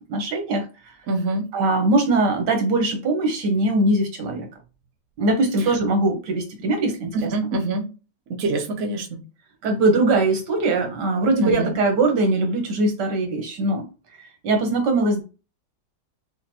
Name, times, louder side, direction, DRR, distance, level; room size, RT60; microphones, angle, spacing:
voice 1, 0.1-0.9 1.5-4.5 5.2-7.3 9.6-13.9 14.2-15.2, right 2 dB, 80° right, 3 dB, 1.6 m, -21 dB
voice 2, 1.1-1.4 7.1-7.8 8.3-9.1 11.4-11.7, right 2 dB, 60° right, 2 dB, 1.1 m, -24 dB
5.8 x 2.2 x 2.7 m, 0.32 s
omnidirectional pair, 1.8 m